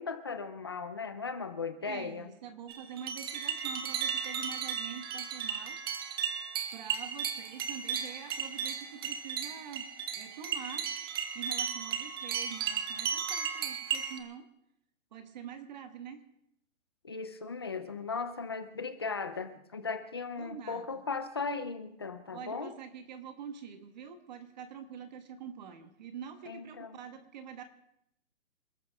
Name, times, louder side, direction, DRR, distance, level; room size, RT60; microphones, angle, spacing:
voice 1, 0.0-2.3 17.0-22.7 26.5-27.0, left 4 dB, 20° left, 10 dB, 0.5 m, -37 dB
voice 2, 1.8-5.8 6.7-10.9 11.3-14.5 15.1-16.2 20.4-21.0 22.3-27.6, right 8 dB, 35° right, 8 dB, 1.4 m, -45 dB
sound 1, 2.7-14.2, right 7 dB, 20° right, 0.7 m, -35 dB
27.0 x 13.5 x 3.5 m, 0.78 s
hypercardioid pair, 160°, 39 cm